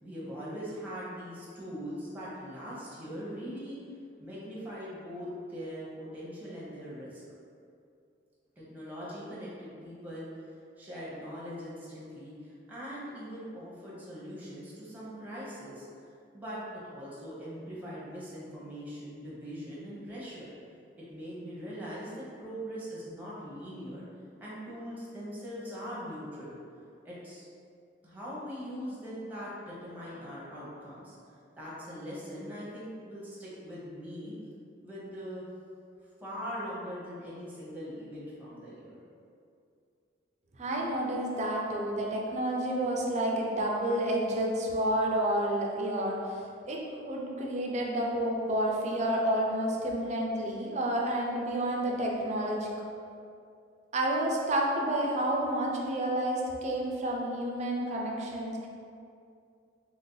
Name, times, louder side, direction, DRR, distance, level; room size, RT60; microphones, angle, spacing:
voice 1, 0.0-3.8 4.2-7.2 8.6-10.3 10.8-15.8 16.3-20.5 21.0-24.1 24.4-26.6 27.0-27.4 28.0-31.1 31.5-34.3 34.8-35.5 36.2-39.0, equal, 10° right, -8 dB, 0.9 m, -41 dB
voice 2, 40.6-52.7 53.9-58.7, right 1 dB, 35° right, -1 dB, 0.5 m, -30 dB
3.0 x 2.6 x 3.9 m, 2.4 s
head